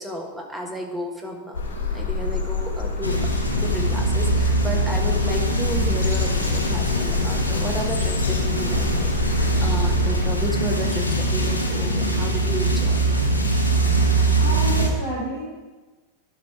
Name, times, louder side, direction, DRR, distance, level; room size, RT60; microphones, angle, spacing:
voice 1, 0.0-1.6 1.9-3.3 3.6-13.0, equal, 5° right, 0 dB, 1.5 m, -32 dB
sound 1, 1.5-10.5, left 4 dB, 70° left, 2.2 m, -28 dB
sound 2, 3.0-14.9, right 2 dB, 90° left, 2.0 m, -22 dB
voice 2, 14.3-15.5, right 1 dB, 90° right, -9 dB, 3.7 m, -29 dB
12.0 x 5.9 x 4.8 m, 1.2 s
figure-of-eight pair, 90°, 0 cm